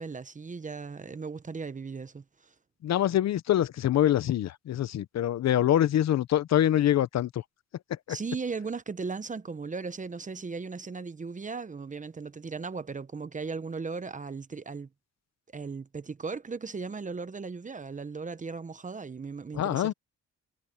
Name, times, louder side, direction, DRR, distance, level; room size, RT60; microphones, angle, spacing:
voice 1, 0.0-2.5 8.1-14.9 15.5-19.9, right 4 dB, 25° right, 1.0 m, -37 dB
voice 2, 2.8-7.4 7.9-8.2 19.5-19.9, left 11 dB, 60° left, 0.8 m, -25 dB
cardioid pair, 90°, 30 cm